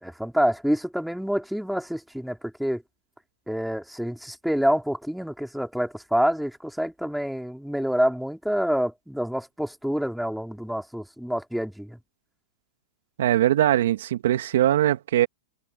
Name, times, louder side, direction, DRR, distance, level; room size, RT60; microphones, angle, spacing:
voice 1, 0.0-2.8 3.5-12.0, equal, ahead, 2.9 m, -27 dB
voice 2, 13.2-15.3, right 12 dB, 70° right, 2.1 m, -21 dB
hypercardioid pair, 145°, 0 cm